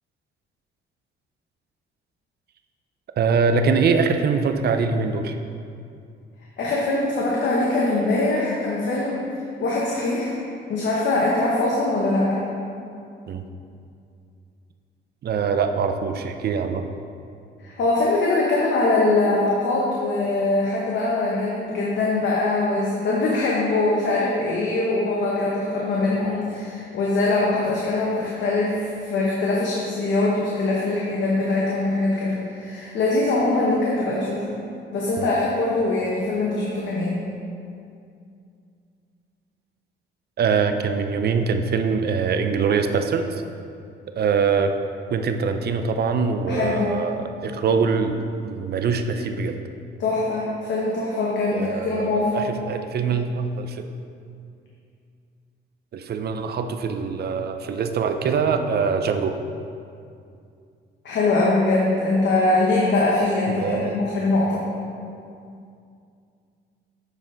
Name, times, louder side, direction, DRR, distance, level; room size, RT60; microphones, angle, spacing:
voice 1, 3.2-5.4 13.3-13.4 15.2-16.8 35.2-35.3 40.4-43.4 44.1-44.7 45.1-49.6 51.5-53.9 55.9-59.4 63.6-64.0, right 5 dB, 55° right, 7 dB, 0.6 m, -23 dB
voice 2, 6.6-9.3 9.6-10.4 10.7-12.4 17.6-34.6 34.9-37.2 46.5-47.0 50.0-52.4 61.0-64.6, left 2 dB, 65° left, -4 dB, 1.1 m, -22 dB
9.5 x 4.1 x 3.9 m, 2.4 s
cardioid pair, 90°, 20 cm